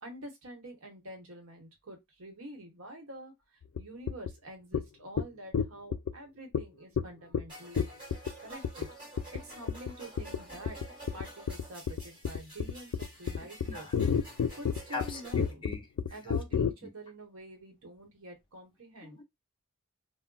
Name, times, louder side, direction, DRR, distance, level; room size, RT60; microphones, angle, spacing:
voice 1, 0.0-7.9 8.4-8.9 9.3-10.8 11.1-13.9 14.5-15.7 16.1-19.2, right 1 dB, 75° right, 1.0 m, -47 dB
sound 1, 3.8-3.9 4.1-4.3 4.7-4.8 5.2-5.3 5.5-6.1 6.5-6.6 7.0-7.1 7.3-7.4 7.8-8.3 8.6-8.9 9.2-9.4 9.7-9.9 10.2-10.4 10.7-16.7, left 6 dB, 70° left, 0.3 m, -30 dB
sound 2, 7.5-15.5, right 1 dB, 25° right, 1.4 m, -50 dB
voice 2, 13.4-13.9 14.9-16.4 16.8-16.9 19.0-19.2, left 3 dB, 20° left, 0.5 m, -42 dB
2.3 x 2.1 x 3.7 m
head